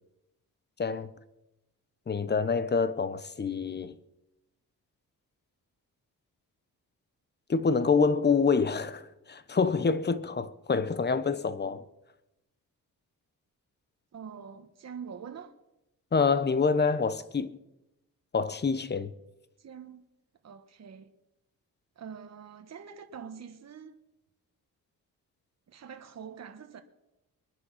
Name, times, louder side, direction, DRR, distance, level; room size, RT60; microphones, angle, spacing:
voice 1, 2.1-3.9 7.5-11.8 16.1-17.5 18.3-19.1, left 5 dB, 30° left, 1.0 m, -26 dB
voice 2, 14.1-15.5 19.6-20.1 20.4-21.1 22.0-24.0 25.7-26.8, right 7 dB, 50° right, 1.4 m, -44 dB
22.0 x 10.0 x 5.9 m
cardioid pair, 100°, 34 cm